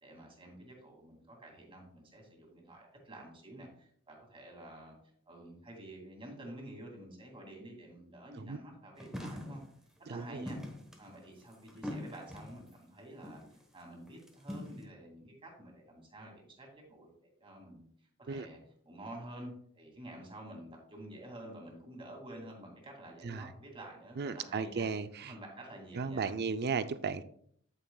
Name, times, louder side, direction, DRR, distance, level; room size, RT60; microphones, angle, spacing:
voice 1, 0.0-5.0 5.3-9.6 10.0-10.6 11.0-18.6 18.8-24.9 25.2-26.3, right 1 dB, 25° right, 0 dB, 2.4 m, -49 dB
sound 1, 9.0-9.7 10.5-12.7 13.2-13.6 14.1-14.8, left 1 dB, 5° right, 1.2 m, -43 dB
voice 2, 10.1-10.5 18.3-18.5 23.2-23.5 24.2-25.3 26.0-27.2, right 5 dB, 45° right, 12 dB, 0.5 m, -35 dB
9.7 x 8.8 x 2.3 m, 0.64 s
head